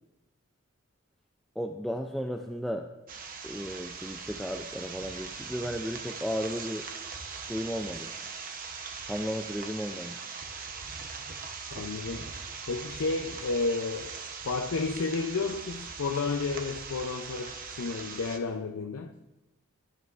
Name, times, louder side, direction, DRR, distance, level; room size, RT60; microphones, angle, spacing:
voice 1, 1.6-2.9 3.4-6.9 7.4-8.1 9.1-10.2, equal, ahead, 0.3 m, -34 dB
sound 1, 3.1-18.4, right 5 dB, 40° right, 0.8 m, -41 dB
voice 2, 11.7-12.3 12.7-14.1 14.4-19.1, left 4 dB, 90° left, 0.5 m, -31 dB
11.5 x 11.0 x 2.4 m
head